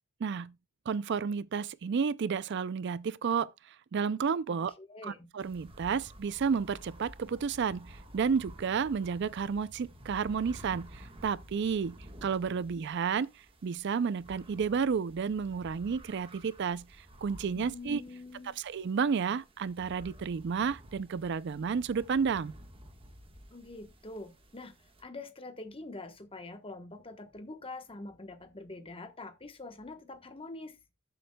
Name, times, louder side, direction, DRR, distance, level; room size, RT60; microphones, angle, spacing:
voice 1, 0.2-0.5 0.9-4.7 5.0-13.3 13.6-18.0 18.6-22.5, right 6 dB, 50° right, 0.4 m, -31 dB
voice 2, 4.8-5.3 17.5-18.6 23.5-30.8, left 2 dB, 25° left, 1.0 m, -45 dB
sound 1, 5.4-25.0, equal, 25° right, 1.4 m, -52 dB
12.5 x 7.8 x 2.2 m
head